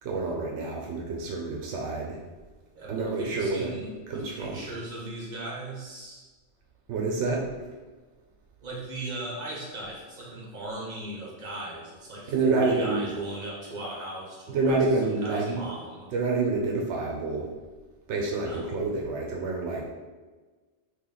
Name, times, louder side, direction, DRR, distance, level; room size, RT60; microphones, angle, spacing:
voice 1, 0.0-2.2 2.9-3.7 4.1-4.6 6.9-7.5 12.3-13.1 14.5-15.6 16.1-17.5 18.1-19.9, right 3 dB, 85° right, -1 dB, 0.9 m, -28 dB
voice 2, 2.7-6.2 8.6-16.1 18.4-18.8, right 1 dB, 45° right, -5 dB, 1.2 m, -38 dB
3.0 x 3.0 x 3.8 m, 1.3 s
omnidirectional pair, 1.2 m